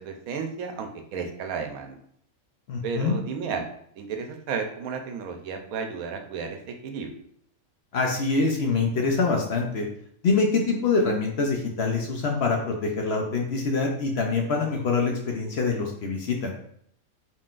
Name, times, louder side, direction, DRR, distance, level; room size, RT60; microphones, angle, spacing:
voice 1, 0.0-2.0 2.8-3.7 4.0-7.1, right 5 dB, 80° right, 5 dB, 1.0 m, -33 dB
voice 2, 2.7-3.2 7.9-9.9 10.2-16.5, left 4 dB, 60° left, 1 dB, 0.7 m, -25 dB
4.3 x 3.8 x 2.5 m, 0.66 s
omnidirectional pair, 1.5 m